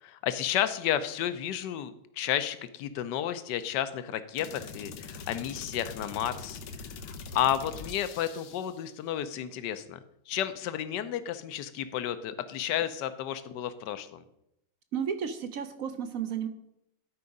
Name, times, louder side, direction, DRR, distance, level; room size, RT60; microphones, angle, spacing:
voice 1, 0.0-6.6 7.0-10.0 10.3-14.2, left 10 dB, 70° left, 12 dB, 1.2 m, -32 dB
sound 1, 4.4-8.8, left 4 dB, 85° left, 1.6 m, -43 dB
voice 2, 14.9-16.5, right 7 dB, 70° right, 10 dB, 0.8 m, -33 dB
12.5 x 4.7 x 5.3 m, 0.81 s
omnidirectional pair, 2.1 m